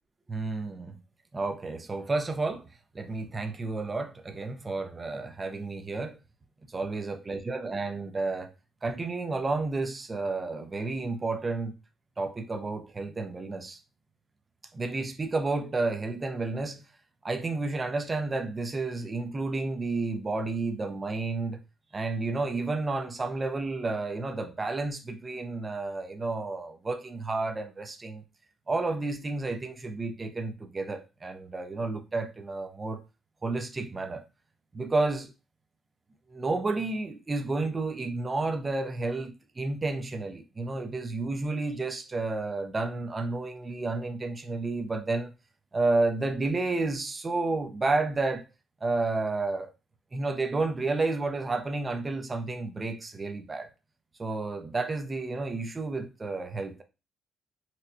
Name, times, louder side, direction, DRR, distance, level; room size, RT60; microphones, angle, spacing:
voice 1, 0.3-1.0 1.3-2.7 2.9-6.2 6.7-8.5 8.8-11.7 12.2-13.8 14.7-16.8 17.2-21.6 21.9-28.2 28.7-33.0 33.4-34.2 34.7-35.3 36.3-45.3 45.7-48.4 48.8-49.7 50.1-53.7 54.2-56.8, right 3 dB, 30° right, 0.5 m, -31 dB
4.2 x 2.1 x 2.6 m
cardioid pair, 90°, 0 cm